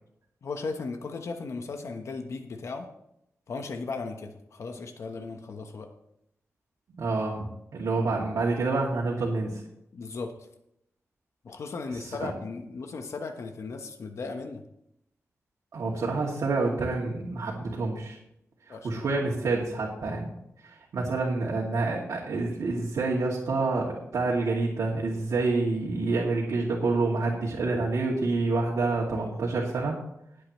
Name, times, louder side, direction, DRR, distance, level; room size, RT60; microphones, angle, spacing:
voice 1, 0.4-2.9 3.5-5.9 9.9-10.3 11.4-14.6 18.7-19.0 29.2-29.3, left 4 dB, 65° left, 5 dB, 1.2 m, -36 dB
voice 2, 7.0-7.4 7.7-9.6 11.9-12.3 15.7-18.2 18.7-20.3 20.6-30.0, right 3 dB, 75° right, -4 dB, 2.5 m, -28 dB
19.0 x 8.6 x 3.2 m, 0.78 s
wide cardioid pair, 165°, 5 cm